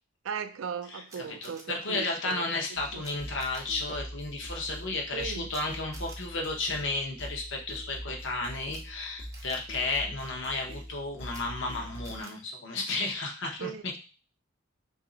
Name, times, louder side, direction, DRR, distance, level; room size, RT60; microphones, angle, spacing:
voice 1, 0.2-3.0 5.1-5.5 13.6-14.0, right 7 dB, 80° right, 0.4 m, -38 dB
voice 2, 0.9-13.7, left 3 dB, 65° left, 0.8 m, -33 dB
Camera, 1.1-1.6 3.0-3.1 3.4-3.6 5.5-5.6 5.9-6.2 8.6-8.8 9.3-9.6 11.2-11.4 12.0-12.3, right 3 dB, 15° right, 0.5 m, -49 dB
sound 1, 2.7-12.2, equal, 30° left, 0.6 m, -43 dB
2.9 x 2.6 x 3.8 m
head